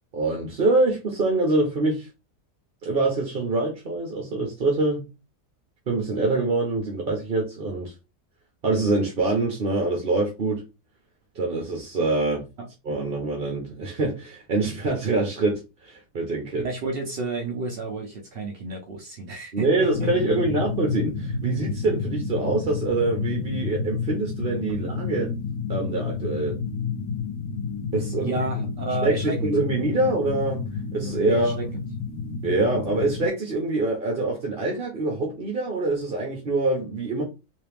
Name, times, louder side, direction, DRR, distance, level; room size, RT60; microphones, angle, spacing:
voice 1, 0.1-2.1 2.8-5.1 5.9-7.9 8.6-10.6 11.3-12.5 12.8-16.7 19.5-25.3 25.7-26.6 27.9-28.4 29.0-30.6 30.9-31.5 32.4-37.2, right 2 dB, 45° right, 0.9 m, -25 dB
voice 2, 16.6-20.1 28.2-29.5 31.3-31.8, right 2 dB, 70° right, 0.5 m, -31 dB
sound 1, 19.9-33.3, left 5 dB, 85° left, 1.3 m, -30 dB
3.2 x 2.9 x 3.4 m
omnidirectional pair, 1.8 m